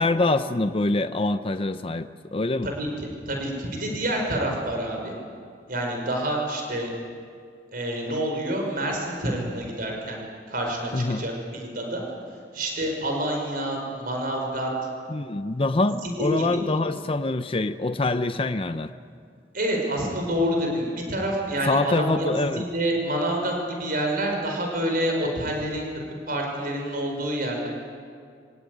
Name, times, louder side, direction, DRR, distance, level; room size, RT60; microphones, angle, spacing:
voice 1, 0.0-2.7 10.9-11.3 15.1-18.9 21.7-22.7, left 2 dB, 30° left, 10 dB, 0.7 m, -25 dB
voice 2, 3.3-5.1 5.7-6.9 7.7-10.2 10.5-12.0 12.5-14.7 16.0-16.6 19.5-25.9 26.3-27.7, right 1 dB, 55° right, 1 dB, 5.3 m, -27 dB
24.0 x 18.5 x 9.3 m, 2.2 s
head